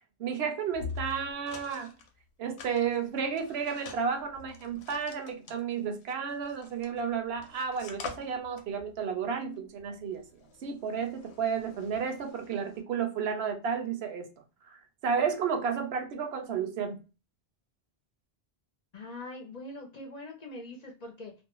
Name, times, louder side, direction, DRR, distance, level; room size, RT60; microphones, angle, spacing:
voice 1, 0.2-1.9 2.4-14.3 15.0-17.0, right 6 dB, 75° right, 0.8 m, -32 dB
sound 1, 0.7-2.1 2.6-7.0 7.4-12.8, left 5 dB, 85° left, 0.9 m, -46 dB
voice 2, 18.9-21.4, left 2 dB, 50° left, 0.6 m, -43 dB
2.5 x 2.1 x 2.9 m
omnidirectional pair, 1.1 m